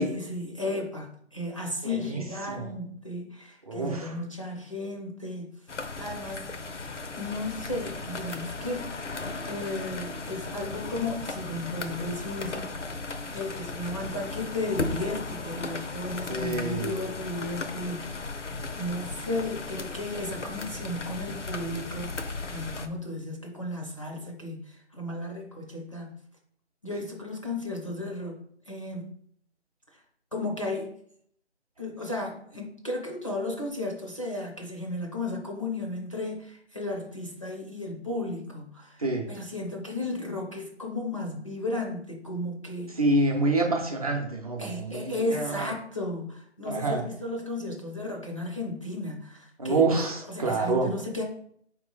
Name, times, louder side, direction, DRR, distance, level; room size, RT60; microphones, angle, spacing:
voice 1, 0.0-5.5 6.0-6.8 7.2-9.2 9.4-12.7 13.2-18.2 18.8-22.1 22.5-26.2 26.8-29.1 30.3-31.0 31.8-42.9 44.6-51.2, left 2 dB, 30° left, -1 dB, 0.5 m, -34 dB
voice 2, 1.8-2.2 2.5-2.7 3.7-4.1 16.3-16.9 39.0-39.3 43.0-45.7 46.7-47.0 49.6-50.9, right 2 dB, 30° right, 0 dB, 0.7 m, -27 dB
sound 1, 5.7-22.9, left 3 dB, 85° left, 0.8 m, -36 dB
4.7 x 3.0 x 3.8 m, 0.65 s
figure-of-eight pair, 155°, 35 cm